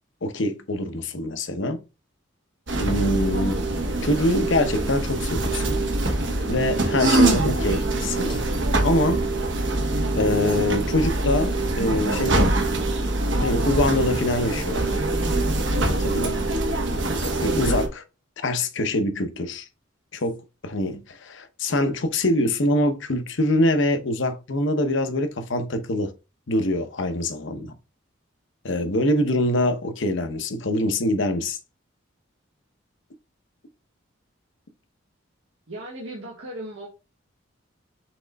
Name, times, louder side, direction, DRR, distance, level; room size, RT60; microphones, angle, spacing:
voice 1, 0.2-1.8 2.8-3.7 4.0-5.8 6.5-8.3 8.8-9.2 10.2-12.6 13.4-15.0 15.8-16.5 17.4-18.0 18.4-19.7 20.1-26.1 26.5-27.7 28.6-31.6, left 1 dB, 70° left, 0.8 m, -24 dB
sound 1, 2.7-17.9, right 2 dB, 65° right, 1.1 m, -24 dB
sound 2, 5.3-5.7 6.8-7.0 8.3-8.8 9.8-9.9 11.3-11.5 14.2-14.5 15.7-16.0 17.2-17.6 18.7-18.8 20.2-20.4, left 1 dB, 25° left, 0.6 m, -41 dB
voice 2, 35.7-36.9, right 1 dB, 85° right, 1.6 m, -36 dB
6.0 x 3.7 x 2.3 m
head